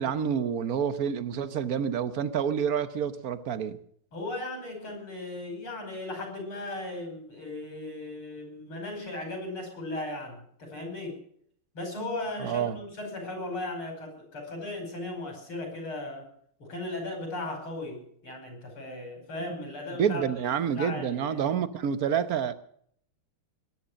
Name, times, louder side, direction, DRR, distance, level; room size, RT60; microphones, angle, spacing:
voice 1, 0.0-3.8 12.4-12.8 20.0-22.5, right 8 dB, 55° right, 1.1 m, -28 dB
voice 2, 4.1-11.2 11.7-16.3 16.6-20.2 20.7-21.4, left 2 dB, 80° left, 6.2 m, -37 dB
21.0 x 10.0 x 6.3 m
omnidirectional pair, 2.3 m